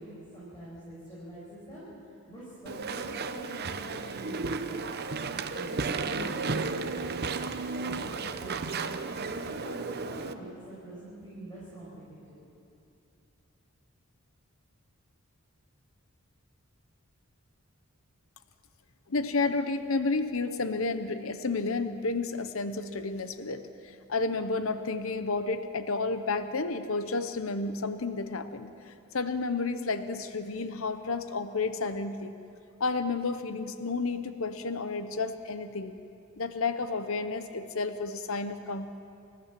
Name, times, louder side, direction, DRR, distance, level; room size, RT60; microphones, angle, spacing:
voice 1, 0.0-4.8 5.3-8.8 9.3-12.4, right 1 dB, 20° left, -9 dB, 5.5 m, -44 dB
Walk footsteps / Chatter / Squeak, 2.7-10.3, right 4 dB, 45° right, 0.8 m, -34 dB
voice 2, 19.1-32.3 32.8-35.9 36.4-38.9, left 3 dB, 65° left, 10 dB, 0.9 m, -31 dB
28.5 x 14.0 x 7.5 m, 2.6 s
head